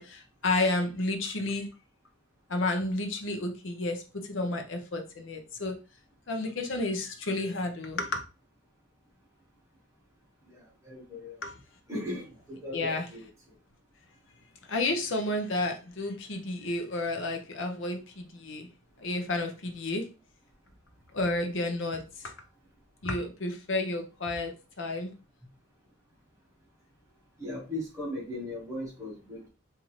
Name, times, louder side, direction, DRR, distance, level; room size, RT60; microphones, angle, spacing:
voice 1, 0.0-1.7 2.5-5.8 6.3-8.2 11.4-11.5 12.7-13.0 14.7-18.7 19.0-20.1 21.1-22.3 23.0-25.1, left 2 dB, 65° left, 5 dB, 0.8 m, -31 dB
voice 2, 10.8-11.4 11.9-13.3 27.4-29.5, left 1 dB, 15° right, -4 dB, 1.4 m, -37 dB
3.8 x 2.8 x 3.1 m, 0.31 s
head